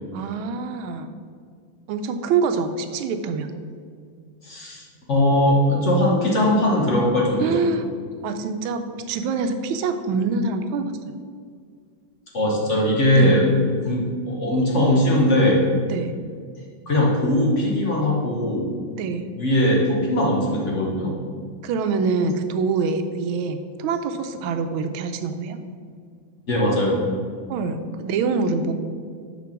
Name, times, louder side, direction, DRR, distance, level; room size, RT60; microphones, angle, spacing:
voice 1, 0.1-1.1 1.9-3.5 7.4-7.9 8.2-10.9 13.1-13.4 15.9-16.2 19.0-19.3 21.6-25.6 27.5-28.7, right 4 dB, 90° right, 8 dB, 1.4 m, -25 dB
voice 2, 4.4-7.6 12.3-13.5 13.8-15.6 16.9-18.7 19.4-21.1 26.5-27.0, left 1 dB, 45° left, -3 dB, 1.1 m, -20 dB
6.1 x 5.1 x 5.8 m, 2.1 s
omnidirectional pair, 2.2 m